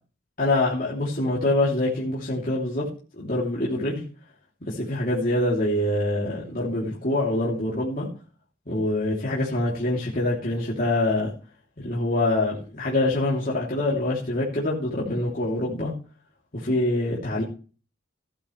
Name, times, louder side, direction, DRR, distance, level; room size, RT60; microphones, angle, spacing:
voice 1, 0.4-2.9 3.2-4.0 4.7-8.1 8.7-11.3 11.8-15.9 16.5-17.4, left 1 dB, 40° left, -6 dB, 3.0 m, -25 dB
15.5 x 10.0 x 3.3 m, 0.37 s
head